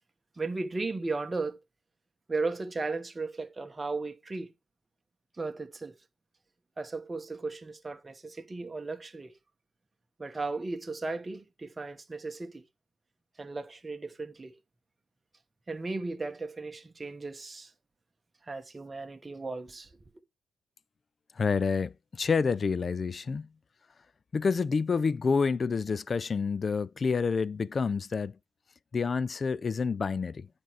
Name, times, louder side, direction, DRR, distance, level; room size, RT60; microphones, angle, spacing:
voice 1, 0.4-1.6 2.3-4.5 5.4-5.9 6.8-9.3 10.2-12.6 13.4-14.5 15.7-17.7 18.5-19.9, right 3 dB, 25° right, 1.1 m, -36 dB
voice 2, 21.4-23.5 24.3-28.3 28.9-30.5, left 5 dB, 45° left, 0.4 m, -28 dB
9.3 x 4.4 x 4.6 m
supercardioid pair, 60°, 0 cm